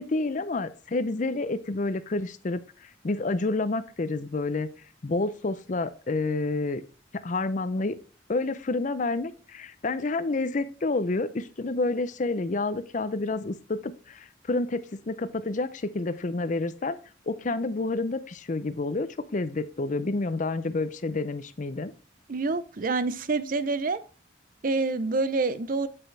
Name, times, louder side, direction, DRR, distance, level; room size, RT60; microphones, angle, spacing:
voice 1, 0.0-4.7 5.0-6.8 7.2-8.0 8.3-17.0 17.3-21.9, left 3 dB, 40° left, 12 dB, 0.5 m, -29 dB
voice 2, 22.3-24.0 24.6-25.9, right 3 dB, 45° right, 14 dB, 0.6 m, -27 dB
7.7 x 6.1 x 3.2 m, 0.38 s
head